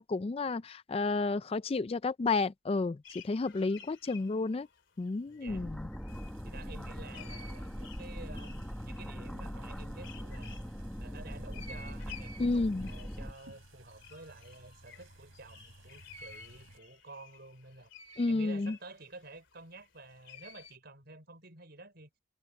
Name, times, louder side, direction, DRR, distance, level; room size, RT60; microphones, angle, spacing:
voice 1, 0.0-4.7 5.0-5.9 12.4-12.9 18.2-18.7, left 3 dB, 30° left, 0.3 m, -31 dB
sound 1, 3.0-5.7 5.9-6.4 7.1-10.8 11.5-20.8, left 5 dB, 65° left, 3.0 m, -53 dB
voice 2, 5.3-5.7 6.4-10.6 11.0-17.9 18.3-22.1, right 2 dB, 50° right, 5.0 m, -51 dB
sound 2, 5.5-13.3, equal, 5° left, 1.2 m, -41 dB
sound 3, 6.1-16.8, right 1 dB, 90° right, 4.3 m, -57 dB
head